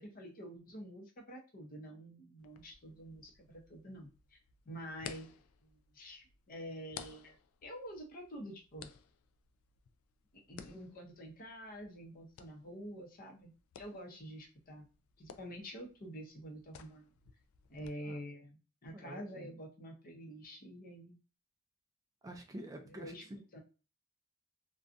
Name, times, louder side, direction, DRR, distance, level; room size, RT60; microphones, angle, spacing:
voice 1, 0.0-4.4 4.7-7.4 7.6-8.9 10.5-13.5 13.8-14.8 15.2-17.1 17.7-21.2 22.8-23.6, equal, 45° left, 1 dB, 0.7 m, -48 dB
sound 1, 2.4-17.9, left 7 dB, 85° left, 0.3 m, -56 dB
voice 2, 18.9-19.5 22.2-23.1, right 1 dB, 15° right, 3 dB, 0.3 m, -48 dB
2.5 x 2.2 x 2.5 m, 0.34 s
head